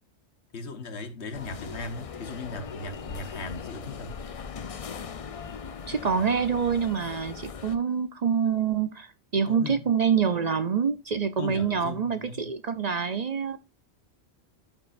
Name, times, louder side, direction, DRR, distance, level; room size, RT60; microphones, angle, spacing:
voice 1, 0.5-4.2 9.5-9.9 11.4-12.5, left 3 dB, 80° left, 1.5 m, -38 dB
sound 1, 1.3-7.8, left 6 dB, 45° left, 0.5 m, -39 dB
voice 2, 5.9-9.1 9.3-13.6, right 6 dB, 45° right, 0.6 m, -26 dB
12.0 x 5.4 x 2.5 m
omnidirectional pair, 1.1 m